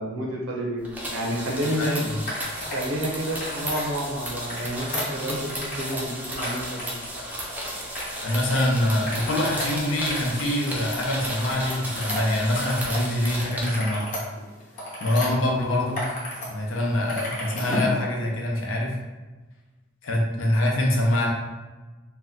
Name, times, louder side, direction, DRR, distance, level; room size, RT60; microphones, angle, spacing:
voice 1, 0.0-2.1 2.7-6.9, equal, 75° right, -2 dB, 0.6 m, -29 dB
sound 1, 0.8-13.8, equal, 10° right, 0.4 m, -34 dB
voice 2, 1.8-2.2 8.2-14.1 15.0-16.1 16.5-18.9 20.0-21.3, left 1 dB, 75° left, -1 dB, 0.6 m, -25 dB
sound 2, 2.2-2.8 3.2-3.9 4.3-6.1 6.3-7.5 7.9-8.6 8.9-13.0 13.4-15.3 15.7-16.5 16.8-17.9, left 1 dB, 35° left, 0.9 m, -34 dB
2.7 x 2.1 x 3.5 m, 1.2 s
head